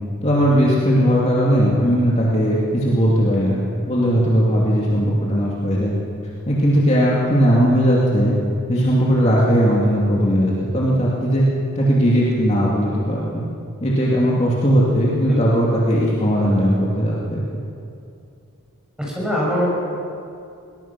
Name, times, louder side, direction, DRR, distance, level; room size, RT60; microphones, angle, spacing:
voice 1, 0.2-5.9 6.5-8.4 8.7-11.4 11.8-13.5 13.8-17.4, equal, 30° left, -5 dB, 2.6 m, -18 dB
voice 2, 19.0-19.7, equal, 5° right, -5 dB, 6.6 m, -22 dB
23.0 x 19.5 x 6.1 m, 2.5 s
head